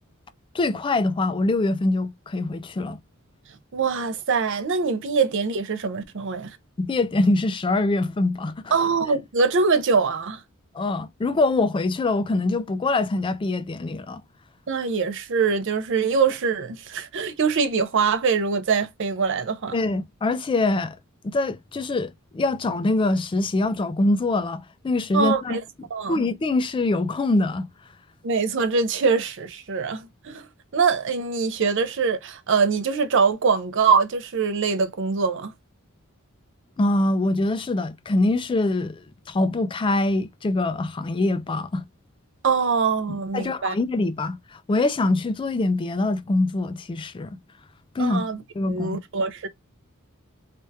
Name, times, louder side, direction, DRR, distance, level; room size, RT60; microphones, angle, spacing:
voice 1, 0.5-3.0 6.8-8.7 10.7-14.2 19.7-21.0 21.2-25.6 26.1-27.7 36.8-41.8 43.1-47.4 47.9-48.2 48.6-49.0, left 2 dB, 25° left, 0.3 m, -24 dB
voice 2, 3.7-6.5 8.7-10.4 14.7-19.8 25.1-25.6 25.9-26.2 28.2-30.5 30.7-35.5 42.4-43.8 48.0-48.4 48.7-49.5, right 5 dB, 60° right, 0.6 m, -23 dB
3.4 x 2.2 x 2.7 m
head